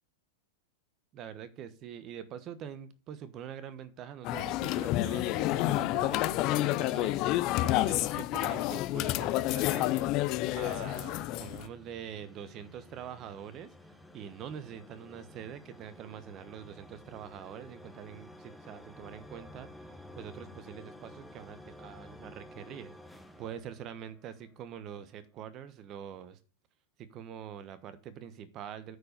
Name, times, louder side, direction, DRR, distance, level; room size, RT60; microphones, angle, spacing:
voice 1, 1.1-7.2 7.6-10.1 10.6-26.4 27.0-29.0, right 9 dB, 40° right, 13 dB, 1.1 m, -45 dB
sound 1, 4.2-11.7, left 16 dB, 45° left, 0.6 m, -29 dB
sound 2, 9.1-24.5, left 1 dB, ahead, 1.1 m, -53 dB
9.3 x 4.6 x 6.6 m, 0.39 s
hypercardioid pair, 115°, 0 cm